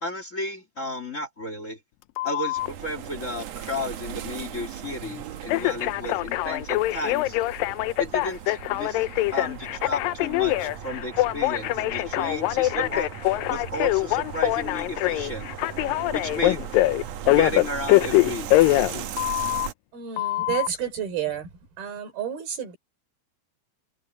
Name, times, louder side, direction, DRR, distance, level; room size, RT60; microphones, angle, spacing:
voice 1, 0.0-1.8 2.2-7.4 8.0-9.0 9.3-13.1 13.5-15.5 16.1-16.7 17.3-18.8, left 1 dB, 25° left, 2.0 m, -33 dB
Telephone, 2.2-2.7 5.5-19.7 20.2-20.7, left 18 dB, 80° left, 2.2 m, -23 dB
sound 1, 2.6-19.7, right 9 dB, 65° right, 1.8 m, -38 dB
voice 2, 19.9-21.5 21.8-22.8, right 9 dB, 80° right, 5.6 m, -30 dB
omnidirectional pair, 4.3 m